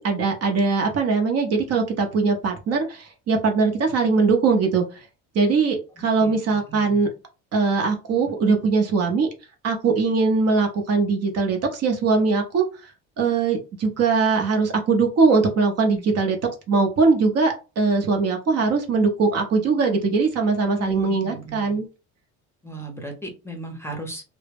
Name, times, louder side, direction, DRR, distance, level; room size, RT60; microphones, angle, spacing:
voice 1, 0.0-4.8 5.3-7.1 7.5-9.3 9.6-12.6 13.2-16.4 16.7-21.9, right 4 dB, 50° right, 3 dB, 0.7 m, -21 dB
voice 2, 6.2-7.0 20.8-21.8 22.6-24.2, right 1 dB, 10° left, 2 dB, 0.7 m, -36 dB
2.2 x 2.0 x 3.3 m, 0.31 s
cardioid pair, 100°, 33 cm